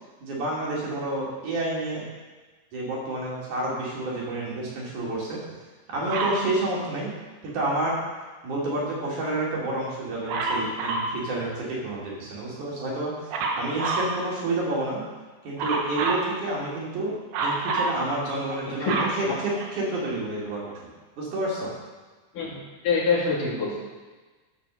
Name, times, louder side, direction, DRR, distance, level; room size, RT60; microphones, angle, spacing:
voice 1, 0.2-2.0 2.7-5.4 5.9-7.1 7.4-8.0 8.4-13.1 13.6-15.0 15.4-17.1 17.4-20.7 21.2-21.7, right 2 dB, 45° right, -5 dB, 4.0 m, -29 dB
Dog, 6.1-6.5 10.3-11.2 13.3-14.1 15.6-16.3 17.3-18.0 18.5-20.0 20.8-20.9, right 3 dB, 70° right, 3.2 m, -27 dB
voice 2, 22.3-23.8, left 4 dB, 50° left, -5 dB, 3.9 m, -26 dB
15.0 x 5.9 x 6.5 m, 1.3 s
omnidirectional pair, 5.4 m